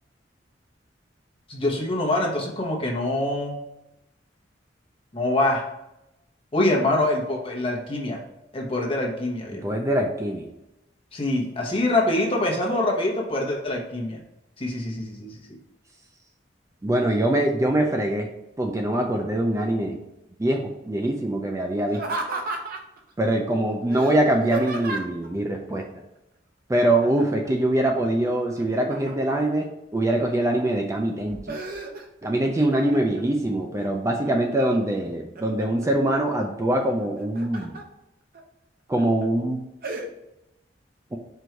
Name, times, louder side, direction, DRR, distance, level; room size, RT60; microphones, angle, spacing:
voice 1, 1.5-3.6 5.1-5.6 6.5-8.2 8.5-9.7 11.1-14.2 14.6-15.6, left 1 dB, 30° left, -1 dB, 1.0 m, -25 dB
voice 2, 9.5-10.5 16.8-18.3 18.6-20.0 20.4-22.0 23.2-25.9 26.7-31.6 32.2-37.8 38.9-39.6 41.1-41.2, right 1 dB, 15° right, 2 dB, 0.4 m, -23 dB
Laughter, 21.9-23.0 23.9-25.3 27.0-27.5 27.8-29.4 30.0-30.6 31.0-32.3 32.7-33.3 33.8-34.6 35.0-35.9 37.0-37.8 38.3-38.4 39.0-39.3 39.8-40.1, right 3 dB, 55° right, 0.7 m, -34 dB
4.5 x 2.6 x 4.4 m, 0.89 s
head